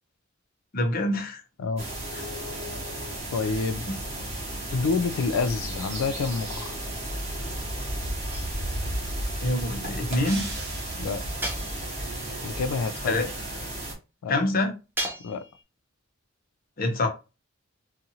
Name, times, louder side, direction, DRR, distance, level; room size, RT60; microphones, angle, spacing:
voice 1, 0.7-1.4 3.9-4.0 9.4-10.5 13.0-13.2 14.3-14.7 16.8-17.1, left 1 dB, 45° left, 0.6 m, -25 dB
sound 1, 1.8-13.9, right 1 dB, 30° right, 1.0 m, -33 dB
voice 2, 3.3-3.9 4.7-6.8 11.0-11.2 12.4-13.3 14.2-14.3 15.2-15.4, left 4 dB, 85° left, 0.3 m, -28 dB
sound 2, 8.3-9.0 11.4-12.2 15.0-15.6, right 1 dB, 10° right, 0.5 m, -35 dB
sound 3, 10.2-11.5, right 3 dB, 55° right, 0.8 m, -40 dB
2.7 x 2.4 x 2.7 m
head